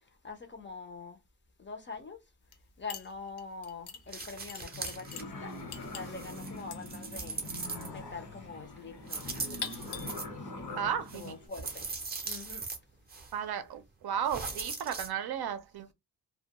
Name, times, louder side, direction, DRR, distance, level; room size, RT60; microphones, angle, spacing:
voice 1, 0.2-1.2 1.6-2.2 2.8-7.4 7.9-9.9 10.6-11.9 12.2-12.6, left 4 dB, 30° left, 0.4 m, -44 dB
sound 1, 2.4-2.6 2.9-11.8, left 7 dB, 90° left, 0.7 m, -46 dB
sound 2, 4.1-5.2 5.6-8.2 9.0-10.2 11.1-12.8 13.1-13.3 14.3-15.1, right 4 dB, 25° right, 0.5 m, -40 dB
sound 3, 4.7-11.5, left 2 dB, 75° left, 1.1 m, -44 dB
voice 2, 10.8-11.3 13.3-15.9, right 8 dB, 70° right, 0.5 m, -34 dB
2.2 x 2.2 x 2.8 m
wide cardioid pair, 165°, 39 cm